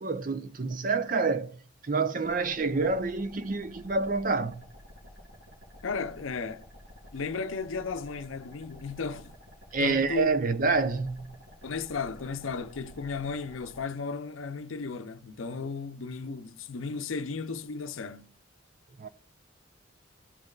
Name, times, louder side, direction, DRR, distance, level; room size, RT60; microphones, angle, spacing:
voice 1, 0.0-1.6 1.8-4.6 9.7-11.4 19.0-19.1, right 4 dB, 40° right, 0.5 m, -28 dB
sound 1, 2.2-13.8, equal, 60° right, 3.6 m, -51 dB
voice 2, 5.8-6.7 7.1-9.3 9.8-10.3 11.6-18.3, left 4 dB, 80° left, 0.6 m, -35 dB
14.0 x 5.3 x 2.4 m
head